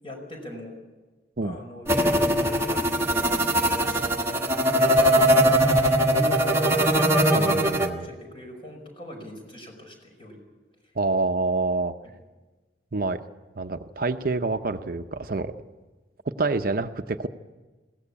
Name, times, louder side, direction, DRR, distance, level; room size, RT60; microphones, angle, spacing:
voice 1, 0.0-0.8 1.4-5.6 6.0-6.8 7.9-10.4, left 1 dB, 30° left, 2 dB, 5.5 m, -40 dB
sound 1, 1.9-7.9, equal, 15° right, 1.4 m, -21 dB
voice 2, 7.3-8.1 11.0-11.9 12.9-13.2 13.6-15.5 16.4-17.3, right 3 dB, 50° right, 8 dB, 0.7 m, -27 dB
21.5 x 16.5 x 8.5 m, 1.2 s
head